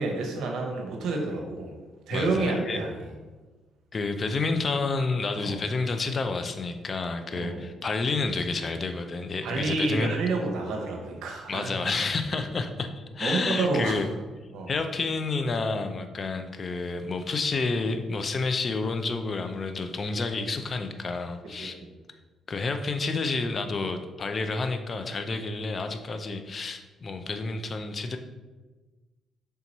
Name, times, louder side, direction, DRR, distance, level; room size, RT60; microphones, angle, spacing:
voice 1, 0.0-1.7 2.1-3.1 5.4-5.6 7.3-7.6 9.4-11.8 13.2-14.0 14.5-14.7 21.5-21.9, right 3 dB, 80° right, 2 dB, 0.7 m, -29 dB
voice 2, 2.1-2.8 3.9-10.1 11.5-14.1 14.7-21.8 22.5-28.2, left 3 dB, 40° left, 7 dB, 0.4 m, -29 dB
3.4 x 2.9 x 4.0 m, 1.3 s
cardioid pair, 90°, 0 cm